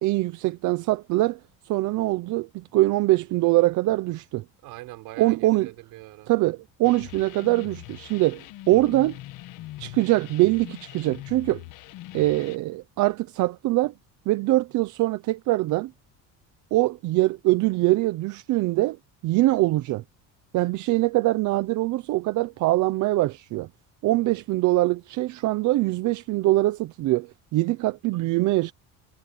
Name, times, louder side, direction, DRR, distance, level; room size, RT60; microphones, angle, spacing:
voice 1, 0.0-1.4 1.7-4.4 5.2-5.7 6.3-9.2 9.8-11.6 12.1-13.9 14.3-15.9 16.7-19.0 19.2-20.0 20.5-23.7 24.0-28.7, right 18 dB, 55° right, 0.8 m, -23 dB
voice 2, 4.6-6.3 24.1-24.4 28.1-28.3, right 20 dB, 75° right, 6.0 m, -43 dB
sound 1, 6.8-12.6, left 17 dB, 65° left, 1.4 m, -42 dB
cardioid pair, 160°, 35 cm